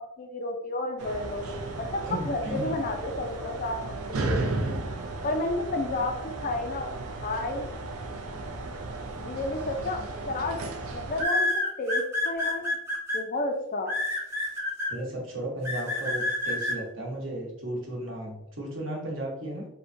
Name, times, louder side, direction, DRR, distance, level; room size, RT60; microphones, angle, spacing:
voice 1, 0.0-4.6 5.2-6.9 7.2-7.7 9.2-10.0 10.3-10.6 10.9-11.5 11.8-12.7 13.1-13.9, left 2 dB, 40° left, 4 dB, 0.4 m, -31 dB
sound 1, 1.0-11.2, right 2 dB, 80° right, 0.5 m, -34 dB
voice 2, 2.0-2.8 14.9-19.7, right 1 dB, 60° right, -2 dB, 1.0 m, -34 dB
sound 2, 9.7-10.0 11.2-13.2 13.9-14.9 15.6-16.7, left 2 dB, 10° right, 0.6 m, -28 dB
3.6 x 2.1 x 2.5 m, 0.82 s
head